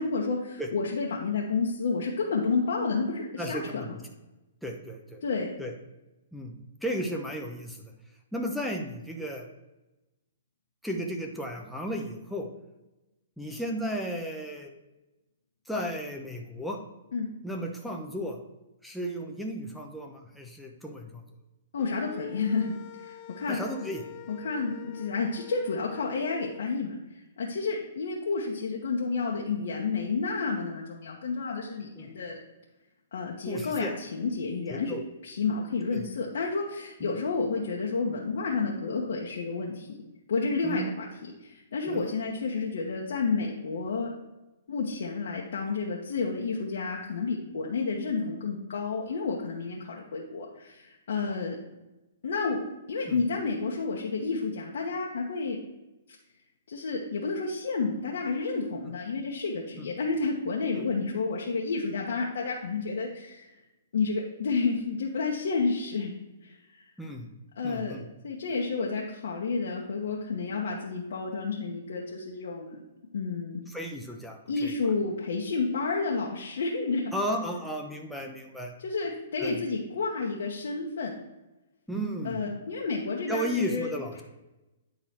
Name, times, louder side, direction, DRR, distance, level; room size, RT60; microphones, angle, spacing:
voice 1, 0.0-3.9 5.2-5.5 17.1-17.3 21.7-22.7 23.0-23.6 24.3-26.9 27.4-32.4 33.1-35.0 35.2-39.9 40.3-41.1 41.4-44.1 44.7-51.6 52.2-52.6 52.9-55.6 56.7-63.5 63.9-66.1 66.4-66.8 67.6-67.9 68.2-72.8 73.1-73.6 74.5-77.1 78.8-81.1 82.2-83.9, left 4 dB, 75° left, -3 dB, 1.2 m, -30 dB
voice 2, 3.4-4.0 4.6-5.2 5.6-5.7 6.3-6.5 6.8-7.9 8.3-9.5 10.8-12.5 13.4-14.7 15.7-16.8 17.4-18.4 18.8-21.2 23.5-24.0 32.0-32.1 33.4-33.9 34.7-35.0 35.9-36.1 37.0-37.1 40.6-40.9 41.9-42.0 53.1-53.2 59.8-59.9 67.0-67.3 67.6-68.1 73.7-74.7 77.1-78.7 79.4-79.6 81.9-82.4 83.3-84.2, equal, ahead, 0 dB, 0.9 m, -34 dB
sound 1, 21.8-26.6, left 14 dB, 35° left, 0.4 m, -46 dB
9.6 x 3.9 x 4.3 m, 1.0 s
hypercardioid pair, 150°, 0 cm